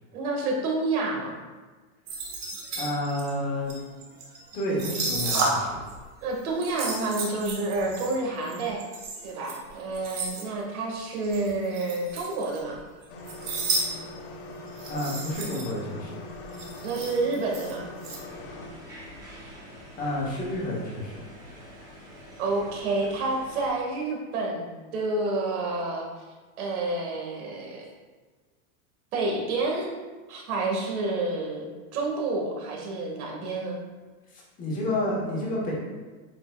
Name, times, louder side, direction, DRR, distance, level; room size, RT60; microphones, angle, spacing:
voice 1, 0.1-1.3 6.2-8.8 9.2-12.8 16.8-17.9 22.4-24.7 24.9-26.1 26.6-27.9 29.1-29.9 30.3-33.8, right 2 dB, 85° right, 0 dB, 1.9 m, -29 dB
sound 1, 2.1-5.9 6.2-10.4 11.2-12.7 13.0-13.9 14.1-14.2 14.7-15.7 16.1-16.2 16.3-18.2, right 3 dB, 40° right, 1.4 m, -32 dB
voice 2, 2.8-3.7 4.5-5.8 14.9-16.2 20.0-21.2 34.3-35.7, left 1 dB, 20° left, -3 dB, 1.1 m, -30 dB
sound 2, 13.1-18.7, left 2 dB, 65° left, 1.3 m, -41 dB
sound 3, 18.2-23.7, equal, 10° right, 0.6 m, -46 dB
7.8 x 5.5 x 2.3 m, 1.3 s
supercardioid pair, 175°, 43 cm